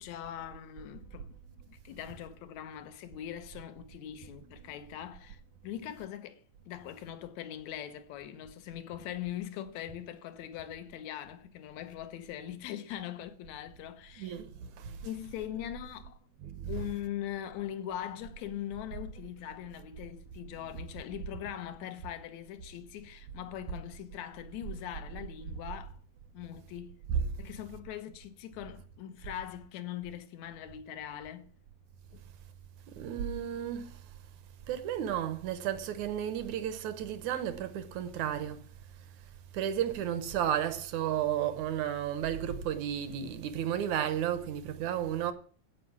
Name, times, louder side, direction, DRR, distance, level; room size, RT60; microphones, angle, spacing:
voice 1, 0.0-1.4 1.7-14.4 15.0-16.2 16.7-26.0 26.3-27.0 27.4-31.5 32.1-32.2, left 11 dB, 70° left, 1.9 m, -41 dB
voice 2, 14.2-15.0 16.4-16.7 27.1-27.2 33.0-33.9 34.7-38.6 39.5-45.3, right 10 dB, 70° right, 1.9 m, -33 dB
16.0 x 5.5 x 6.0 m
omnidirectional pair, 4.2 m